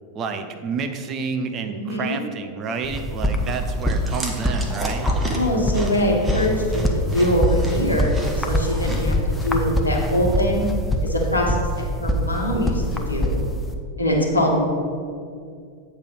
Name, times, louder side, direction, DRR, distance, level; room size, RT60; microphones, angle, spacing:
voice 1, 0.1-5.1, right 5 dB, 30° right, 7 dB, 0.6 m, -29 dB
voice 2, 1.6-2.2 5.3-10.6 11.0-13.4 14.0-14.6, equal, 80° left, -1 dB, 1.2 m, -23 dB
sound 1, 2.8-13.8, left 1 dB, 10° left, 0.6 m, -24 dB
Chewing mastication, 3.2-9.1, right 1 dB, 15° right, 0.9 m, -33 dB
8.2 x 3.4 x 5.8 m, 2.2 s
figure-of-eight pair, 90°, 0 cm